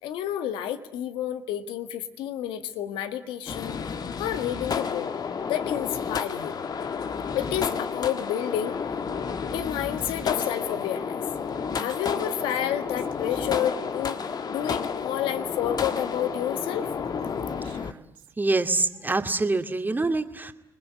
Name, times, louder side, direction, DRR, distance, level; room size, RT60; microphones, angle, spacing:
voice 1, 0.0-5.1 5.4-6.6 7.3-8.7 9.5-11.2 11.7-14.2 14.5-16.9, left 11 dB, 85° left, 10 dB, 1.7 m, -30 dB
sound 1, 3.5-17.9, left 6 dB, 55° left, 1.7 m, -31 dB
Female speech woman speaking, 9.5-18.3, right 10 dB, 75° right, 1.8 m, -49 dB
voice 2, 18.4-20.5, right 3 dB, 20° right, 7 dB, 2.6 m, -25 dB
29.0 x 20.5 x 9.7 m, 0.78 s
supercardioid pair, 60°, 8 cm